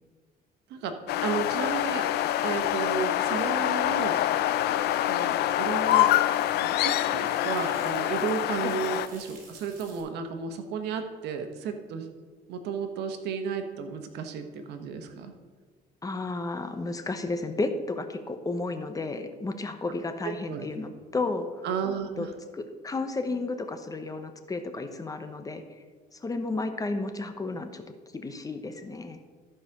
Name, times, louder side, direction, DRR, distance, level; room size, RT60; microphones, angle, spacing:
voice 1, 0.7-2.1 2.4-4.2 5.1-6.1 6.6-12.1 12.5-15.3 20.2-20.7 21.6-22.3, right 6 dB, 80° right, 7 dB, 1.2 m, -33 dB
sound 1, 1.1-9.1, left 13 dB, 75° left, 0.5 m, -26 dB
sound 2, 2.2-10.0, right 4 dB, 55° right, 3.5 m, -54 dB
voice 2, 16.0-21.7 22.2-22.3 22.5-25.6 26.1-27.8 28.1-29.2, left 3 dB, 20° left, 8 dB, 0.9 m, -32 dB
13.5 x 5.0 x 5.9 m, 1.5 s
cardioid pair, 110°, 17 cm